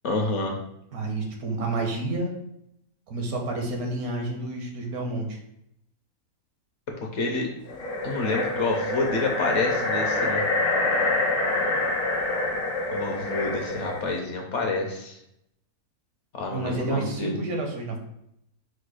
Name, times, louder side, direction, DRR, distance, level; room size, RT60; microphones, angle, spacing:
voice 1, 0.0-0.6 7.0-7.5 8.0-10.4 12.9-15.2 16.3-17.3, left 3 dB, 60° left, 1 dB, 0.9 m, -28 dB
voice 2, 0.9-2.4 3.1-5.4 16.5-18.0, right 2 dB, 80° right, 1 dB, 1.4 m, -29 dB
sound 1, 7.7-14.1, left 2 dB, 80° left, 1.4 m, -26 dB
4.7 x 2.2 x 4.7 m, 0.80 s
omnidirectional pair, 1.6 m